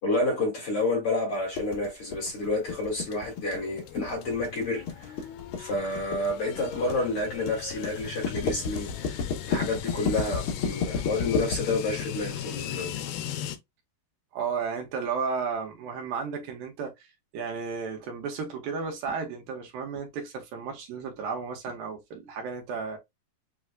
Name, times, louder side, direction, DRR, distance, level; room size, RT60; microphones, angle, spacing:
voice 1, 0.0-5.2 5.6-9.2 9.5-12.9, left 2 dB, 40° left, 2.7 m, -29 dB
sound 1, 1.5-13.1, left 5 dB, 65° left, 1.3 m, -32 dB
sound 2, 2.7-13.6, left 10 dB, 90° left, 2.7 m, -38 dB
voice 2, 14.3-17.1 17.3-23.0, right 5 dB, 70° right, 2.8 m, -33 dB
7.5 x 3.1 x 2.2 m
omnidirectional pair, 4.4 m